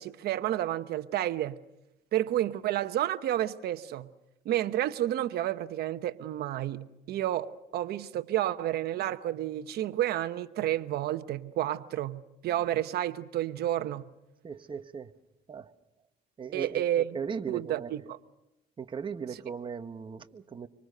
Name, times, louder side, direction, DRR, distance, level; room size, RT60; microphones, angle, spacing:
voice 1, 0.0-1.6 2.1-4.1 4.4-14.1 16.5-17.2 17.5-18.2, right 12 dB, 70° right, 1.0 m, -30 dB
voice 2, 14.4-15.1 15.5-15.7 16.4-17.9 18.8-20.7, right 6 dB, 30° right, 1.2 m, -38 dB
25.5 x 25.0 x 6.7 m
cardioid pair, 110°, 17 cm